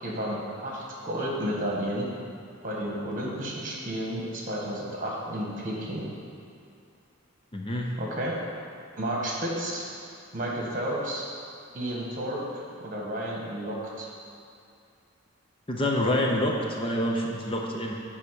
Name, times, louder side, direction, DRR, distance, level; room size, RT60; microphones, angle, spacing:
voice 1, 0.0-2.1 2.6-6.0 8.0-8.3 8.9-9.8 10.3-11.3 11.7-12.4 12.8-14.1, right 1 dB, 45° right, -2 dB, 1.5 m, -32 dB
voice 2, 7.5-7.9 15.7-17.9, left 1 dB, 25° left, 0 dB, 0.7 m, -27 dB
9.9 x 3.6 x 6.9 m, 2.6 s
head